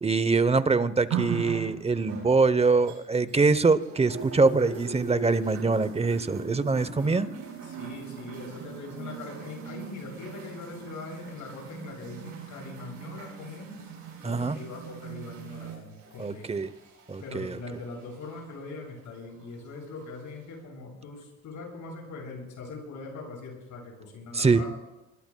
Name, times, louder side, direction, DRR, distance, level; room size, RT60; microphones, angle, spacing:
voice 1, 0.0-7.3 14.2-14.6 16.2-16.7 17.1-17.6 24.3-24.6, right 4 dB, 20° right, 15 dB, 0.8 m, -24 dB
sound 1, 1.1-3.5 3.8-18.5 19.4-19.5, right 6 dB, 80° right, 7.2 m, -39 dB
voice 2, 6.9-7.2 7.6-13.9 14.2-16.5 17.2-24.8, left 3 dB, 80° left, -1 dB, 8.0 m, -41 dB
25.5 x 21.0 x 2.3 m, 0.96 s
cardioid pair, 90°, 30 cm